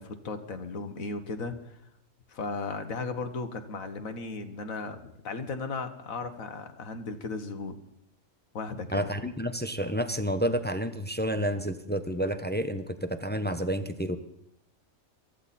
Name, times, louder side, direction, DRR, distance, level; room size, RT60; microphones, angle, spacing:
voice 1, 0.0-1.8 2.3-7.7 8.5-9.1, left 3 dB, 75° left, 7 dB, 1.8 m, -36 dB
voice 2, 8.9-14.2, equal, 10° left, 9 dB, 0.7 m, -30 dB
23.5 x 14.5 x 4.3 m, 0.77 s
omnidirectional pair, 1.4 m